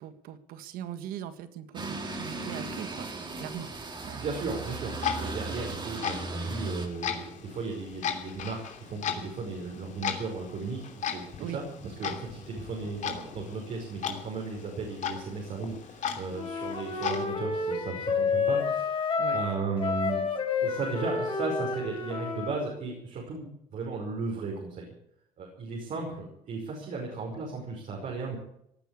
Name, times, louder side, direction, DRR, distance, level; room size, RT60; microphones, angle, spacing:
voice 1, 0.0-3.1 3.4-3.7 4.0-4.2 11.4-11.6 19.2-19.4, right 10 dB, 75° right, 11 dB, 1.7 m, -40 dB
sound 1, 1.7-6.9, right 3 dB, 30° right, 3.7 m, -36 dB
voice 2, 4.1-20.2 20.6-24.9 25.4-28.4, right 4 dB, 55° right, -1 dB, 5.4 m, -35 dB
Clock, 4.7-17.2, left 8 dB, 55° left, 2.9 m, -37 dB
Wind instrument woodwind instrument, 16.3-22.6, left 5 dB, 35° left, 4.1 m, -30 dB
18.0 x 9.5 x 8.5 m, 0.76 s
supercardioid pair, 90°, 15 cm